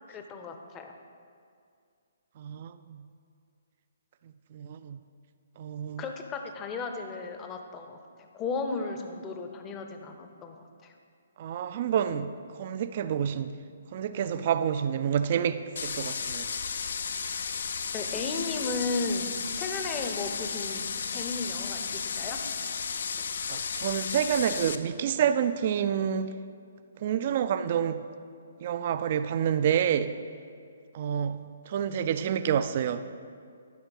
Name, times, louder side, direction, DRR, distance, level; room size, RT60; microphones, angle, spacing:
voice 1, 0.1-0.9 6.0-10.9 17.9-22.4, left 4 dB, 20° left, 5 dB, 0.6 m, -35 dB
voice 2, 2.4-3.0 4.5-5.0 5.6-6.0 11.4-12.3 12.6-13.5 13.9-16.5 23.5-26.3 27.0-28.0 28.6-30.2 30.9-31.4 31.7-33.0, right 8 dB, 40° right, 12 dB, 0.3 m, -28 dB
sound 1, 15.8-24.8, left 6 dB, 55° left, 0.4 m, -33 dB
11.5 x 5.7 x 3.9 m, 2.3 s
figure-of-eight pair, 130°, 0 cm